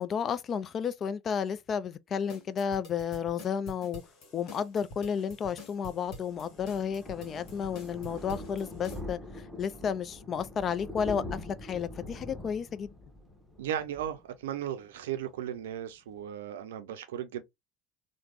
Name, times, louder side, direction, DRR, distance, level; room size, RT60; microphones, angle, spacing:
voice 1, 0.0-4.0 4.3-12.9, left 7 dB, 40° left, 0.3 m, -32 dB
sound 1, 2.3-9.0, left 1 dB, 55° left, 1.1 m, -47 dB
Thunder, 5.6-14.9 15.3-15.5 15.8-15.9 16.1-16.2, left 2 dB, ahead, 1.0 m, -44 dB
voice 2, 13.6-17.4, right 10 dB, 75° right, 0.4 m, -36 dB
3.2 x 2.1 x 3.0 m
hypercardioid pair, 70°, 0 cm